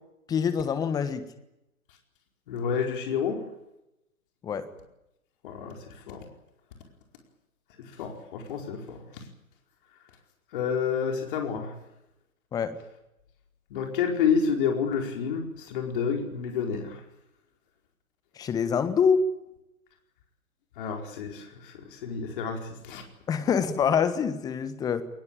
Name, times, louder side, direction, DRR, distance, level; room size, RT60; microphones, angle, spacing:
voice 1, 0.3-1.2 4.4-4.7 12.5-12.8 18.4-19.2 23.3-25.0, left 6 dB, 10° left, 12 dB, 1.4 m, -25 dB
voice 2, 2.5-3.4 5.4-6.2 7.8-9.0 10.5-11.7 13.7-17.0 20.8-23.0, left 6 dB, 35° left, 4 dB, 4.7 m, -29 dB
22.0 x 21.0 x 8.9 m, 0.87 s
figure-of-eight pair, 140°, 43 cm